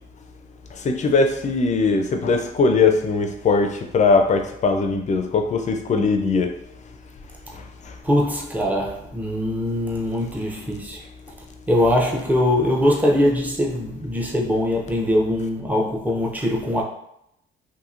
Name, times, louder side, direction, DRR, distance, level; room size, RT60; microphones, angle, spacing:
voice 1, 0.8-6.5, left 4 dB, 35° left, 0.4 m, -20 dB
voice 2, 8.0-11.0 11.7-16.8, left 1 dB, 10° right, 0.6 m, -22 dB
2.8 x 2.7 x 2.4 m
cardioid pair, 90°, 20 cm